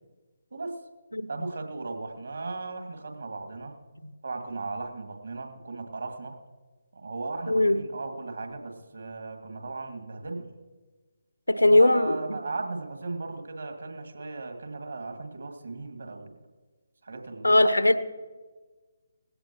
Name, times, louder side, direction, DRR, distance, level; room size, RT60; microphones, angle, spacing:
voice 1, 1.3-3.8 4.2-6.4 6.9-10.5 11.7-16.4 17.0-17.5 17.8-18.0, right 3 dB, 65° right, 4 dB, 2.3 m, -36 dB
voice 2, 11.5-12.2 17.4-18.0, left 1 dB, 85° left, 11 dB, 1.0 m, -19 dB
19.5 x 16.5 x 3.0 m, 1.3 s
figure-of-eight pair, 145°, 0 cm